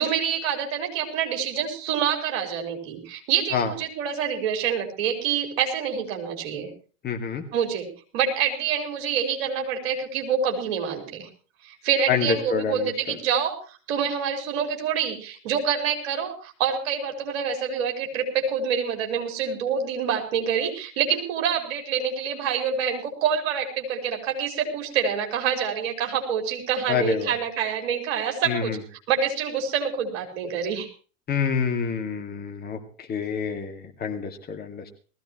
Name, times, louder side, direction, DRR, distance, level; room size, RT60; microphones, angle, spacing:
voice 1, 0.0-6.7 7.5-11.3 11.6-30.9, right 7 dB, 50° right, 3 dB, 4.5 m, -26 dB
voice 2, 7.0-7.4 12.1-13.2 26.9-27.3 28.5-28.8 31.3-35.0, left 6 dB, 25° left, 4 dB, 2.2 m, -27 dB
19.5 x 16.0 x 3.1 m, 0.38 s
figure-of-eight pair, 85°, 39 cm